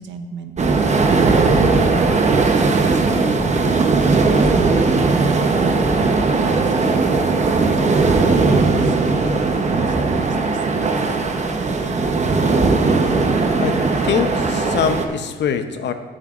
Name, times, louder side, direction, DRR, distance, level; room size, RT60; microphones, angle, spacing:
voice 1, 0.0-1.7 2.5-6.7 7.3-9.2 9.5-11.0, right 5 dB, 70° right, 6 dB, 1.1 m, -34 dB
sound 1, 0.6-15.1, right 3 dB, 35° right, 1.0 m, -18 dB
voice 2, 13.6-15.9, left 7 dB, 60° left, 8 dB, 0.8 m, -23 dB
16.0 x 7.5 x 2.5 m, 1.5 s
cardioid pair, 90°, 20 cm